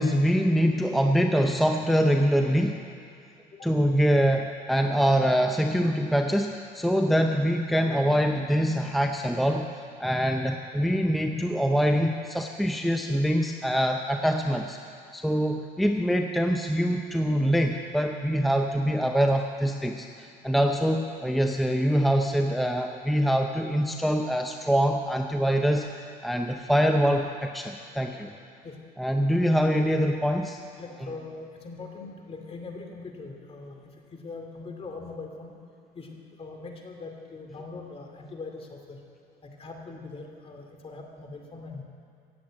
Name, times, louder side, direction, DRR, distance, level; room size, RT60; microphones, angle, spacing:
voice 1, 0.0-2.8 3.6-9.7 10.0-14.8 15.1-25.9 26.2-28.3 29.0-30.6, equal, ahead, 4 dB, 0.6 m, -24 dB
voice 2, 30.8-35.5 35.9-39.0 39.4-41.8, left 3 dB, 35° left, 2 dB, 2.5 m, -41 dB
16.5 x 7.9 x 8.7 m, 2.4 s
cardioid pair, 110°, 17 cm